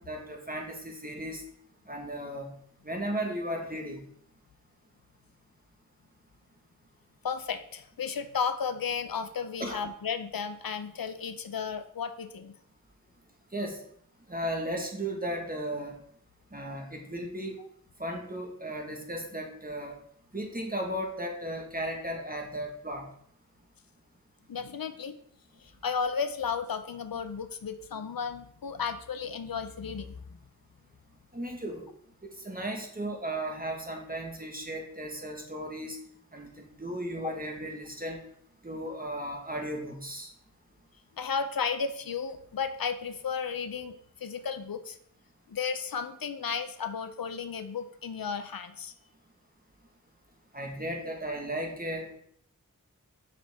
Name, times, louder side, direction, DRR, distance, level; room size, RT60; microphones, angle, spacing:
voice 1, 0.1-1.4 1.9-2.5 2.8-4.0 9.6-9.8 13.5-13.8 14.3-15.9 16.5-17.6 18.0-20.0 20.3-23.1 31.3-31.9 32.2-36.0 36.3-38.2 38.6-40.3 50.5-52.1, right 1 dB, 25° right, 1 dB, 1.4 m, -35 dB
voice 2, 7.2-12.5 17.6-17.7 24.5-25.1 25.6-30.2 37.2-37.3 41.2-45.0 45.5-48.9, left 6 dB, 90° left, 9 dB, 0.5 m, -34 dB
5.9 x 5.0 x 3.4 m, 0.66 s
wide cardioid pair, 40°, 34 cm